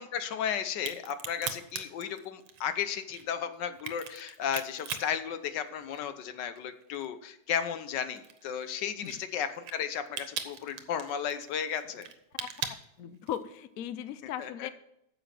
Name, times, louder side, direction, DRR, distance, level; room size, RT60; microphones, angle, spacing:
voice 1, 0.0-12.1 14.4-14.7, left 8 dB, 65° left, 11 dB, 1.4 m, -34 dB
Crack, 0.7-6.2 6.6-13.6, right 8 dB, 85° right, 1.8 m, -41 dB
voice 2, 12.4-14.7, left 10 dB, 90° left, 13 dB, 0.7 m, -38 dB
9.4 x 7.1 x 5.8 m, 0.80 s
omnidirectional pair, 2.2 m